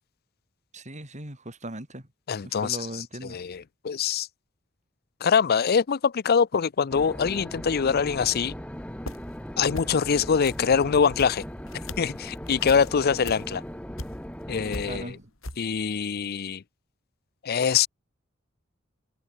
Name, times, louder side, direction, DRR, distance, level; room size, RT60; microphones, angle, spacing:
voice 1, 0.7-2.1 2.4-3.4 14.9-15.3, right 1 dB, 35° right, 6.6 m, -38 dB
voice 2, 2.3-2.8 3.3-4.3 5.2-8.5 9.6-11.4 12.0-13.6 14.5-15.1 15.6-16.6 17.4-17.9, left 6 dB, 50° left, 0.5 m, -24 dB
sound 1, 6.9-15.0, equal, 5° left, 2.1 m, -38 dB
sound 2, 8.8-9.4 9.7-10.1 10.4-14.4 14.7-15.6, left 2 dB, 90° left, 6.5 m, -40 dB
head